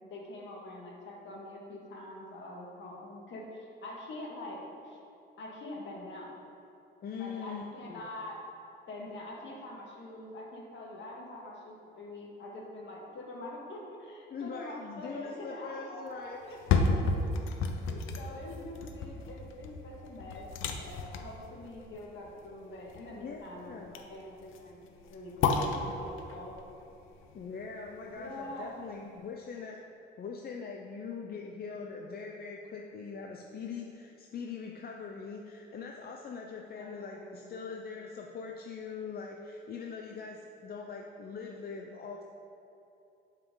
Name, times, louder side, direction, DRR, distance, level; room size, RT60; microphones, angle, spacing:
voice 1, 0.0-4.6 4.8-5.0 5.4-6.4 7.2-8.4 8.9-16.9 17.9-20.5 20.8-26.6 28.0-28.8 36.7-37.6, left 1 dB, 70° left, -2 dB, 2.1 m, -45 dB
voice 2, 7.0-8.1 14.3-16.4 23.2-23.9 27.3-29.8 30.2-42.2, left 5 dB, 50° left, 1 dB, 0.7 m, -42 dB
sound 1, 16.4-28.5 28.9-29.0, left 4 dB, 90° left, 0.7 m, -33 dB
12.0 x 5.6 x 3.9 m, 2.9 s
cardioid pair, 90°, 20 cm